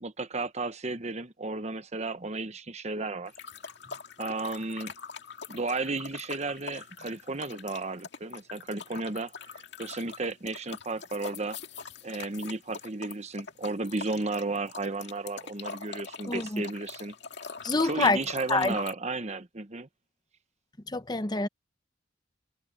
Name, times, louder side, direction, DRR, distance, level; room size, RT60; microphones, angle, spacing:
voice 1, 0.0-3.3 4.2-4.9 5.5-11.6 12.0-17.1 17.8-19.9, right 3 dB, 35° right, 1.1 m, -34 dB
sound 1, 3.3-18.9, left 5 dB, 60° left, 2.2 m, -43 dB
voice 2, 16.3-16.6 17.6-18.2 18.5-18.8 20.9-21.5, left 3 dB, 20° left, 0.8 m, -26 dB
head